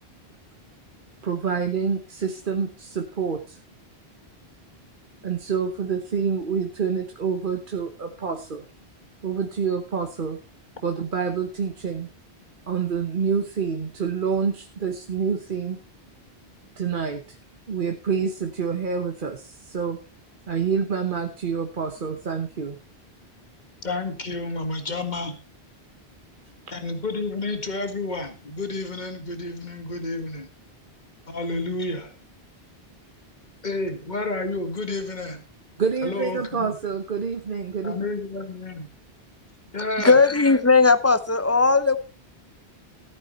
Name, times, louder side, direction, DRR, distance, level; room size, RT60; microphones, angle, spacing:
voice 1, 1.2-3.6 5.2-8.6 9.2-10.4 10.8-12.1 12.7-15.8 16.8-17.4 17.7-20.0 20.5-22.8 35.8-37.9, right 6 dB, 55° right, 1.2 m, -27 dB
voice 2, 23.8-25.3 26.7-30.5 31.3-32.1 33.6-35.4 36.0-36.8 37.8-38.8 39.7-40.2, left 2 dB, 45° left, 2.0 m, -30 dB
voice 3, 40.0-42.0, left 4 dB, 15° left, 0.6 m, -17 dB
14.5 x 9.0 x 4.2 m
omnidirectional pair, 1.1 m